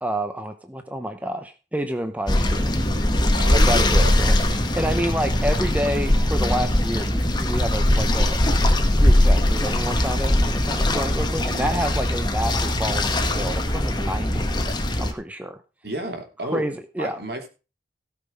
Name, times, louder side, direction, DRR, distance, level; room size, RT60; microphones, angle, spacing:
voice 1, 0.0-2.7 3.5-8.4 8.9-14.4 15.0-15.6 16.4-17.2, right 1 dB, 10° right, 8 dB, 0.8 m, -29 dB
sound 1, 2.3-15.1, left 1 dB, 25° left, 1.8 m, -21 dB
voice 2, 3.4-4.1 15.8-16.7 17.0-17.5, right 1 dB, 60° right, 4 dB, 3.1 m, -31 dB
17.5 x 6.0 x 5.3 m, 0.32 s
head